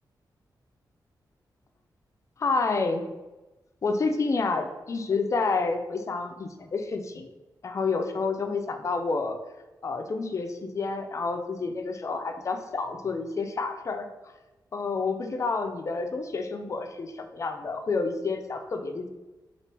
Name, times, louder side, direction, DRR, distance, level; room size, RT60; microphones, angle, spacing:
voice 1, 2.4-3.0 3.8-7.3 7.6-9.4 9.8-14.1 14.7-19.1, left 4 dB, 40° left, 6 dB, 0.4 m, -29 dB
4.3 x 2.4 x 3.3 m, 1.1 s
wide cardioid pair, 105°, 8 cm